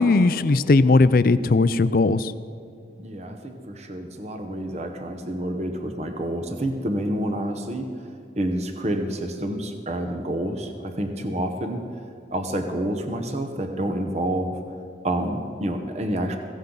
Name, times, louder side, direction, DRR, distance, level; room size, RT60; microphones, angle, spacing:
voice 1, 0.0-2.3, left 3 dB, 55° left, 14 dB, 0.5 m, -18 dB
voice 2, 3.0-7.9 8.4-11.8 12.3-14.6 15.0-16.4, right 1 dB, 40° right, 5 dB, 1.0 m, -28 dB
16.5 x 16.0 x 3.9 m, 2.6 s
head